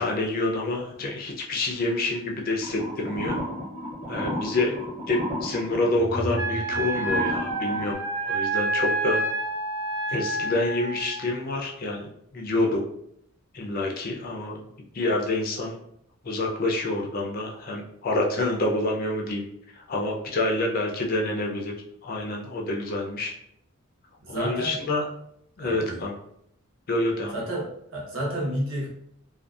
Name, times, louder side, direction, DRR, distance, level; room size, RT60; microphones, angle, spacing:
voice 1, 0.0-3.4 4.1-4.7 5.1-9.2 10.1-12.8 13.5-14.6 14.9-15.8 16.2-19.4 19.7-21.7 22.0-23.3 24.3-25.0 25.6-26.1 26.9-27.3, left 2 dB, 40° left, 0 dB, 0.4 m, -27 dB
sound 1, 2.6-7.9, equal, 30° right, 0.6 m, -33 dB
Wind instrument woodwind instrument, 6.3-11.2, right 2 dB, 80° right, 0.4 m, -28 dB
voice 2, 24.2-24.8 25.6-26.0 27.3-27.7 27.9-28.9, right 1 dB, 65° right, -4 dB, 0.9 m, -30 dB
2.5 x 2.3 x 2.3 m, 0.73 s
head